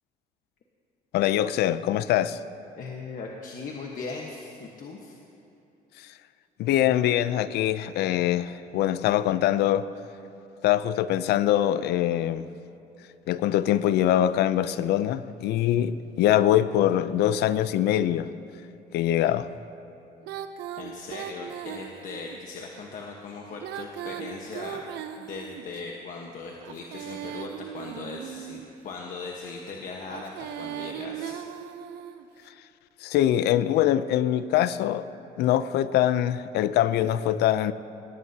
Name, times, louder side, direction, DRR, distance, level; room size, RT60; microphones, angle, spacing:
voice 1, 1.1-2.4 6.6-9.9 10.6-12.5 13.3-18.3 18.9-19.5 33.0-35.1 35.4-37.7, left 12 dB, 75° left, 0.5 m, -23 dB
voice 2, 2.8-5.2 20.8-24.8 25.2-31.4, left 4 dB, 50° left, 1.3 m, -39 dB
Female singing, 20.2-22.4 23.5-25.8 26.6-28.8 30.0-32.3, right 10 dB, 80° right, 0.8 m, -38 dB
19.0 x 17.5 x 2.8 m
cardioid pair, 110°, 17 cm